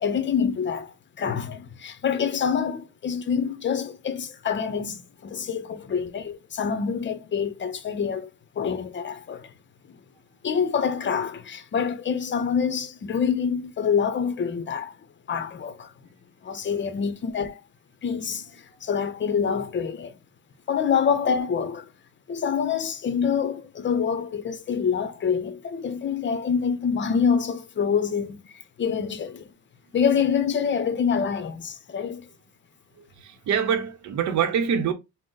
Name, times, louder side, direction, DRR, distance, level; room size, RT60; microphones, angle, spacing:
voice 1, 0.0-8.3 8.6-9.5 9.9-10.0 10.4-15.0 15.3-15.9 16.4-17.6 18.0-20.2 20.7-21.9 22.3-29.5 29.9-32.3, left 6 dB, 40° left, 0.6 m, -26 dB
voice 2, 33.0-34.9, right 7 dB, 70° right, 0.7 m, -25 dB
3.8 x 2.1 x 3.8 m
cardioid pair, 90°, 30 cm